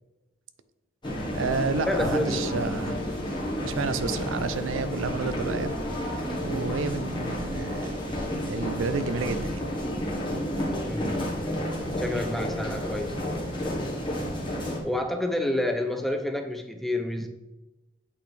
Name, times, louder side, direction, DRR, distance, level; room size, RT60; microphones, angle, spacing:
sound 1, 1.0-14.8, equal, 25° left, 1.4 m, -31 dB
voice 1, 1.3-3.0 3.6-5.7 6.4-7.9 8.5-9.7, right 4 dB, 85° right, 12 dB, 0.5 m, -30 dB
voice 2, 1.9-2.4 10.9-11.2 12.0-13.2 14.8-17.3, left 1 dB, ahead, 5 dB, 0.4 m, -29 dB
8.5 x 4.1 x 3.3 m, 1.0 s
head